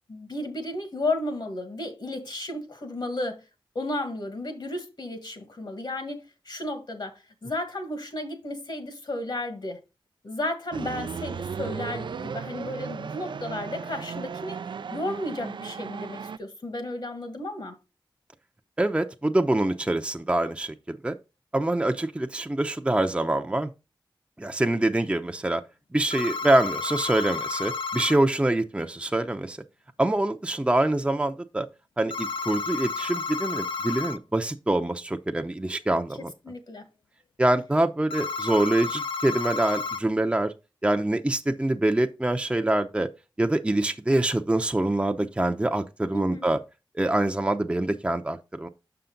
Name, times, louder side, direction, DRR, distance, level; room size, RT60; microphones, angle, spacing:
voice 1, 0.1-3.4 3.8-9.8 10.2-14.6 14.9-17.8 36.2-36.9 46.1-46.5, left 1 dB, 60° left, 1.8 m, -33 dB
sound 1, 10.7-16.4, right 6 dB, 70° right, 0.4 m, -35 dB
voice 2, 18.8-21.2 21.5-23.7 24.4-25.6 25.9-29.6 30.0-31.7 32.0-36.3 37.4-40.5 40.8-43.1 43.4-46.6 46.9-48.7, right 1 dB, 15° right, 0.6 m, -25 dB
sound 2, 26.1-28.2 32.1-34.2 38.1-40.0, left 4 dB, 85° left, 0.4 m, -31 dB
6.7 x 5.7 x 3.9 m
cardioid pair, 55°, 9 cm